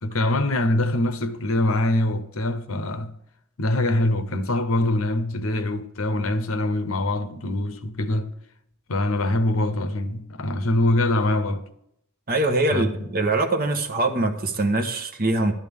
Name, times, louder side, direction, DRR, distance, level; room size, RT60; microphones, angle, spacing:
voice 1, 0.0-3.2 3.6-8.3 8.9-11.7 12.7-12.9, left 1 dB, 80° left, 0.9 m, -24 dB
voice 2, 12.3-15.5, right 2 dB, 45° right, 1.3 m, -23 dB
12.0 x 11.5 x 3.6 m
head